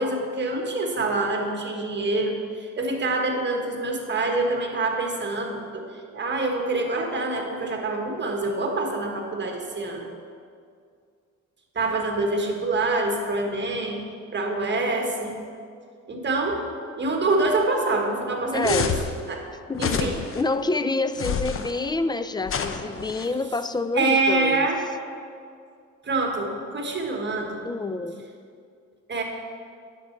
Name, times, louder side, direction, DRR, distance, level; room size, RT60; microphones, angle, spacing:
voice 1, 0.0-5.9 6.1-10.1 11.7-14.0 14.3-15.3 16.1-16.6 17.0-18.9 19.3-19.4 19.8-20.2 23.9-24.8 26.0-27.6 29.1-29.2, right 2 dB, 35° right, 2 dB, 1.5 m, -25 dB
voice 2, 18.5-18.9 19.7-24.7 27.6-28.3, left 3 dB, 15° left, 12 dB, 0.3 m, -27 dB
sound 1, 18.6-19.1 19.7-20.4 21.1-21.7 22.5-23.3, left 6 dB, 45° left, 0.8 m, -28 dB
10.0 x 6.8 x 4.6 m, 2.3 s
cardioid pair, 90°, 30 cm